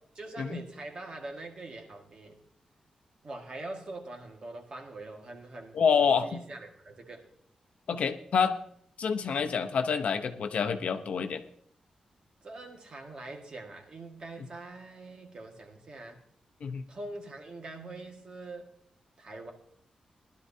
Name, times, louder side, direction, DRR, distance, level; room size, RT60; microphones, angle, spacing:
voice 1, 0.2-2.4 3.2-7.3 12.4-16.2 16.9-18.7 19.2-19.5, right 2 dB, 40° right, 2 dB, 1.8 m, -43 dB
voice 2, 5.7-6.4 7.9-8.6 9.0-11.4 16.6-16.8, left 6 dB, 65° left, 7 dB, 0.8 m, -27 dB
19.5 x 12.0 x 2.8 m, 0.67 s
wide cardioid pair, 155°, 2 cm